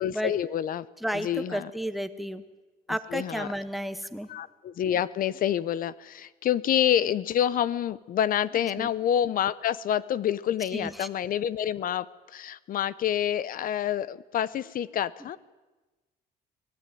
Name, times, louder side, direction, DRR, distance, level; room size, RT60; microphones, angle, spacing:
voice 1, 0.0-0.9 1.1-1.7 3.1-3.5 4.3-15.4, left 10 dB, 55° left, 18 dB, 0.9 m, -27 dB
voice 2, 1.0-2.4 2.9-4.3 8.8-8.9 10.7-11.1, equal, ahead, 9 dB, 1.7 m, -32 dB
25.0 x 18.0 x 9.3 m, 1.2 s
cardioid pair, 110°, 17 cm